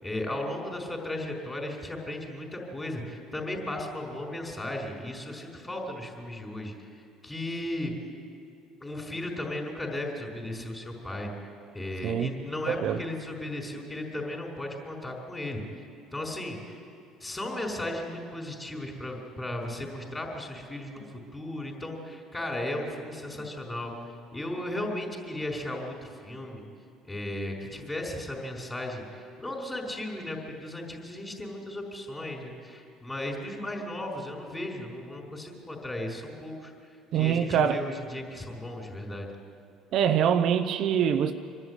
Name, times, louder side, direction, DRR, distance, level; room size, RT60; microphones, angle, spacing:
voice 1, 0.0-6.7 7.2-7.9 8.8-11.3 11.7-15.6 16.1-16.8 17.2-21.0 21.3-23.9 24.3-26.6 27.1-36.7 37.1-39.3, left 1 dB, 15° left, 5.1 m, -35 dB
voice 2, 12.7-13.0 37.1-37.9 39.9-41.3, right 8 dB, 60° right, 0.9 m, -24 dB
25.5 x 11.0 x 9.9 m
supercardioid pair, 75°, 0 cm